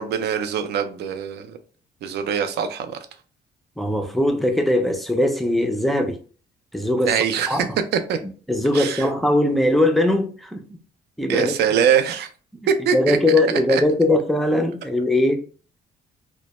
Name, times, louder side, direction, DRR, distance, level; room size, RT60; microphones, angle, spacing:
voice 1, 0.0-1.6 2.0-3.0 7.1-7.7 8.1-8.2 8.7-9.1 11.3-12.3 12.7-13.2 13.7-13.8, right 7 dB, 70° right, 0.4 m, -22 dB
voice 2, 3.8-6.2 6.7-7.1 7.5-7.8 8.5-10.8 11.2-11.5 12.9-15.4, left 1 dB, ahead, 0.4 m, -20 dB
2.1 x 2.1 x 2.8 m
cardioid pair, 100°, 18 cm